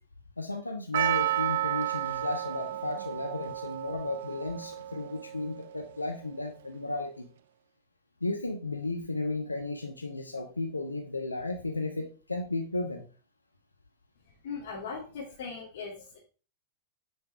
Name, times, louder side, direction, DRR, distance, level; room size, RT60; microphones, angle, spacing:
voice 1, 0.4-7.3 8.2-13.1, left 2 dB, 85° left, 5 dB, 1.1 m, -34 dB
Percussion, 0.9-5.9, right 13 dB, 60° right, 0.3 m, -32 dB
voice 2, 14.4-16.2, left 5 dB, 55° left, -6 dB, 3.1 m, -39 dB
9.5 x 5.8 x 4.7 m, 0.36 s
figure-of-eight pair, 90°, 0 cm